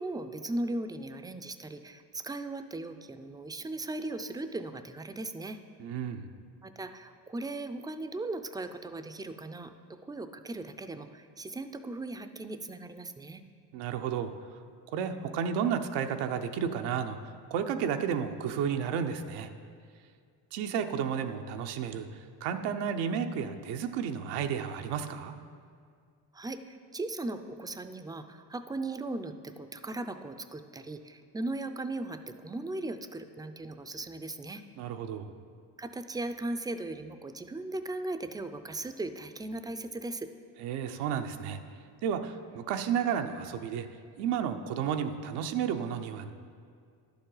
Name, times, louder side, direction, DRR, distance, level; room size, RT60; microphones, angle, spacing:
voice 1, 0.0-5.6 6.6-13.4 26.3-34.6 35.8-40.3, right 2 dB, 10° right, 9 dB, 0.4 m, -38 dB
voice 2, 5.8-6.3 13.7-14.3 14.9-19.5 20.5-25.4 34.8-35.3 40.6-41.6 42.0-43.9 44.2-46.3, right 7 dB, 85° right, 7 dB, 0.7 m, -32 dB
11.0 x 7.1 x 3.9 m, 2.2 s
supercardioid pair, 90°, 41 cm